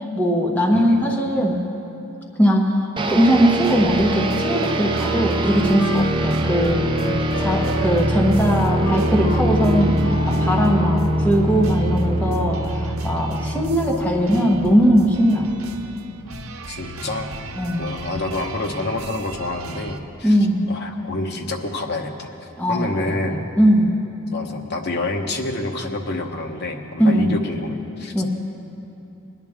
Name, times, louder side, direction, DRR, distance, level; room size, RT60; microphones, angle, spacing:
voice 1, 0.1-1.6 2.4-6.8 7.4-15.5 17.6-17.9 20.2-20.7 22.6-24.0 27.0-27.3 28.1-28.3, equal, 10° left, -2 dB, 1.2 m, -19 dB
voice 2, 0.7-1.0 16.7-17.3 17.8-20.4 20.7-22.3 22.7-23.4 24.3-28.1, left 2 dB, 50° left, 2 dB, 1.0 m, -28 dB
sound 1, 3.0-15.2, right 1 dB, 25° right, 0.5 m, -23 dB
sound 2, 3.6-20.0, right 1 dB, 90° right, 0.8 m, -37 dB
Wind instrument woodwind instrument, 4.6-10.9, right 1 dB, 75° left, 2.6 m, -30 dB
20.0 x 10.5 x 3.6 m, 2.8 s
head